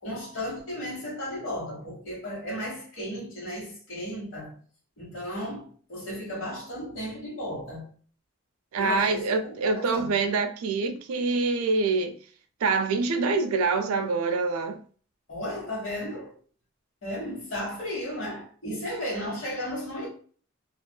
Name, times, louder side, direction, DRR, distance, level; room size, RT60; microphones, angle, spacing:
voice 1, 0.0-4.6 5.0-7.9 8.7-10.1 15.3-16.3 17.0-20.1, equal, 70° left, 1.2 m, -34 dB
voice 2, 8.7-12.2 12.6-14.8, right 4 dB, 90° right, 0.3 m, -25 dB
2.4 x 2.3 x 2.2 m
head